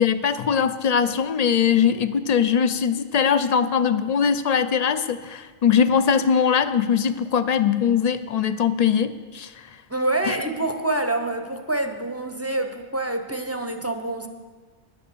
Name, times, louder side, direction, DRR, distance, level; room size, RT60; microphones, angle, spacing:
voice 1, 0.0-9.5 10.3-10.4, left 7 dB, 55° left, 12 dB, 0.5 m, -21 dB
voice 2, 9.9-14.3, right 2 dB, 15° right, 6 dB, 0.6 m, -26 dB
10.5 x 9.2 x 6.8 m, 1.4 s
omnidirectional pair, 1.1 m